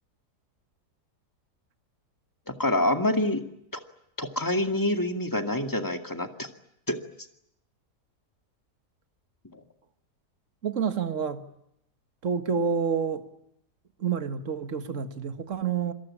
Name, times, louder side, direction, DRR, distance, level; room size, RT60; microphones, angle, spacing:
voice 1, 2.5-3.4 4.2-6.5 6.9-7.0 9.5-9.6, left 1 dB, 10° left, 2.1 m, -26 dB
voice 2, 10.6-11.5 12.2-13.3 14.0-15.9, right 6 dB, 50° right, 1.9 m, -28 dB
27.5 x 22.0 x 8.7 m
omnidirectional pair, 1.7 m